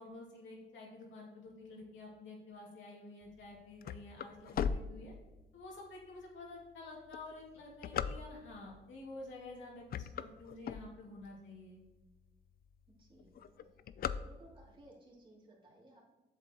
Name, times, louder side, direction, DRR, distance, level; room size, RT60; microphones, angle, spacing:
voice 1, 0.0-5.1 5.5-11.8, left 2 dB, 70° left, -2 dB, 2.5 m, -50 dB
sound 1, 3.4-5.6 6.2-6.3 7.0-8.7 9.3-9.5 9.8-11.4 11.9-12.0 12.2-12.3 12.6-12.9 13.2-14.8, left 7 dB, 50° left, 0.4 m, -38 dB
voice 2, 13.0-13.7 14.2-16.1, right 1 dB, 25° right, -4 dB, 2.8 m, -60 dB
8.3 x 6.9 x 3.0 m, 1.1 s
cardioid pair, 90°, 20 cm